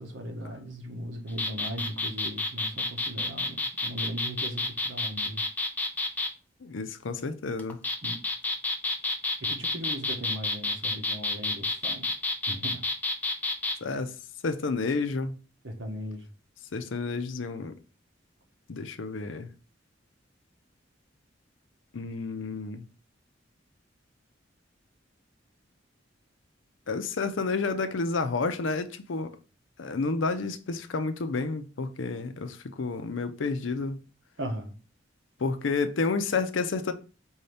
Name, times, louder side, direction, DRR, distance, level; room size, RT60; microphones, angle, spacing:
voice 1, 0.0-5.4 8.0-8.2 9.4-12.0 12.5-12.8 15.6-16.3 34.4-34.7, equal, 85° right, 1.0 m, -38 dB
sound 1, 1.3-6.3 7.6-13.8, left 2 dB, 10° left, 0.5 m, -30 dB
voice 2, 6.6-7.8 13.8-14.2 14.4-15.4 16.7-17.7 18.7-19.5 21.9-22.9 26.9-29.4 29.8-34.0 35.4-36.9, left 4 dB, 85° left, 0.6 m, -30 dB
4.6 x 2.7 x 3.3 m
head